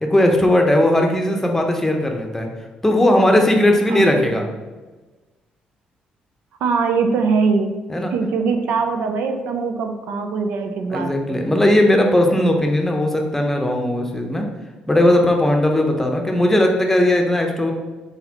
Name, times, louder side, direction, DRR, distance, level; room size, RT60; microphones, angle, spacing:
voice 1, 0.0-2.5 2.8-4.4 7.9-8.1 10.9-14.5 14.9-17.7, left 1 dB, 10° left, 2 dB, 0.8 m, -17 dB
voice 2, 6.6-7.7 8.1-11.4, right 4 dB, 75° right, 5 dB, 0.4 m, -22 dB
4.0 x 3.9 x 2.9 m, 1.2 s
supercardioid pair, 65°, 3 cm